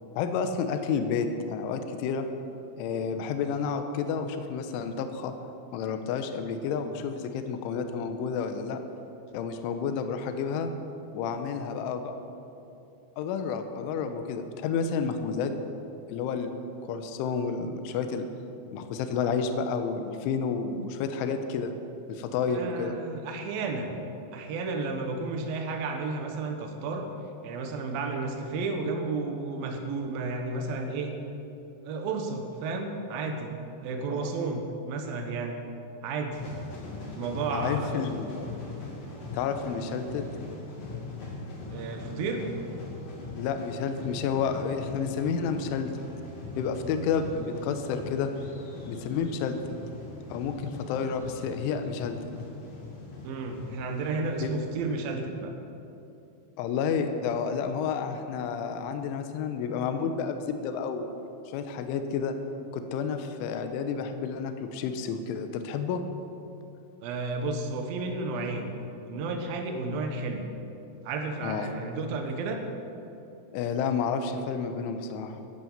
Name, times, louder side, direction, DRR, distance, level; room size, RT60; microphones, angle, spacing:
voice 1, 0.1-2.3 2.8-5.3 5.7-8.8 9.3-10.7 11.1-12.2 13.2-15.5 16.1-16.5 16.8-18.3 18.7-21.7 22.1-23.0 34.1-34.3 37.5-38.6 39.3-40.2 43.4-45.9 46.6-48.3 48.9-49.8 50.3-52.2 54.4-54.5 56.6-61.1 61.5-62.3 62.7-66.0 71.4-71.7 73.5-75.4, left 6 dB, 75° left, 7 dB, 3.2 m, -30 dB
voice 2, 22.5-24.0 24.3-27.1 27.4-31.1 31.8-33.5 33.8-35.6 36.0-36.4 37.2-38.0 41.7-42.5 53.2-55.5 67.0-68.8 69.1-70.5 71.0-72.6, right 3 dB, 70° right, 4 dB, 2.2 m, -32 dB
sound 1, 36.3-54.9, left 3 dB, 40° left, 2.5 m, -41 dB
14.0 x 10.0 x 7.4 m, 2.8 s
omnidirectional pair, 5.9 m